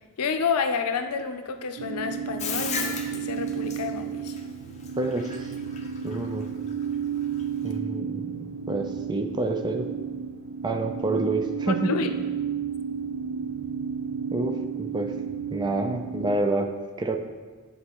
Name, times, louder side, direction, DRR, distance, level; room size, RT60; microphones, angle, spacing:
voice 1, 0.2-4.4 11.8-12.1, left 5 dB, 85° left, 7 dB, 0.5 m, -29 dB
sound 1, 1.8-16.4, right 7 dB, 85° right, 0.4 m, -32 dB
Bathtub (filling or washing), 2.4-7.8, left 5 dB, 30° left, 0.6 m, -35 dB
voice 2, 5.0-5.5 6.0-6.5 7.6-9.9 10.6-11.9 14.3-15.1 15.5-17.2, right 2 dB, 20° right, 5 dB, 0.4 m, -28 dB
8.6 x 4.0 x 3.0 m, 1.4 s
head